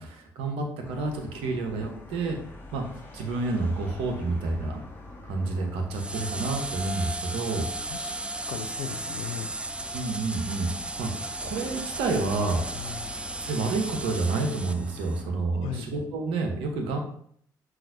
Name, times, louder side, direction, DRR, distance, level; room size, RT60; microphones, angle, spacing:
voice 1, 0.0-2.4 2.7-4.8 5.2-7.7 9.9-10.7 11.0-12.7 13.4-17.0, right 3 dB, 65° right, 3 dB, 0.7 m, -29 dB
sound 1, 0.8-15.4, left 1 dB, 20° left, 1.0 m, -45 dB
sound 2, 5.9-15.2, right 2 dB, 10° right, 0.4 m, -35 dB
voice 2, 8.5-9.5 12.7-13.1 15.5-15.9, left 9 dB, 65° left, 8 dB, 0.4 m, -37 dB
5.7 x 2.5 x 2.6 m, 0.62 s
figure-of-eight pair, 45°, 10 cm